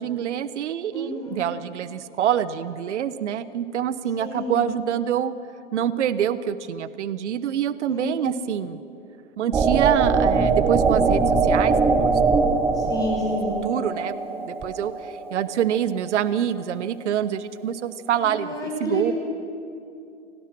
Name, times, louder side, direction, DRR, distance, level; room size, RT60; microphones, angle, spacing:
voice 1, 0.0-5.3 5.7-8.8 9.4-11.8 12.0-13.1 13.6-18.5 18.8-19.1, right 9 dB, 65° right, 15 dB, 1.1 m, -26 dB
voice 2, 0.9-1.4 4.2-4.5 7.9-8.4 12.8-13.7 18.1-19.1, left 1 dB, 10° left, -2 dB, 6.2 m, -30 dB
sound 1, 9.5-16.2, right 4 dB, 5° right, 0.5 m, -22 dB
28.5 x 19.0 x 6.2 m, 2.6 s
hypercardioid pair, 145°, 37 cm